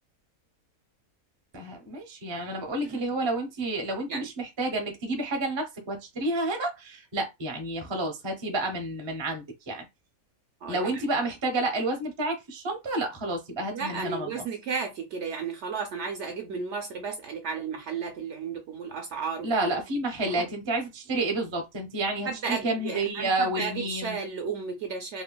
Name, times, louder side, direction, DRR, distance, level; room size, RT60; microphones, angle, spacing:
voice 1, 1.5-9.8 10.7-14.3 19.4-24.2, right 2 dB, 30° right, 0.5 m, -30 dB
voice 2, 10.6-11.0 13.6-19.5 20.3-20.5 22.2-25.2, right 5 dB, 65° right, 0.8 m, -34 dB
3.2 x 2.2 x 2.2 m
omnidirectional pair, 1.5 m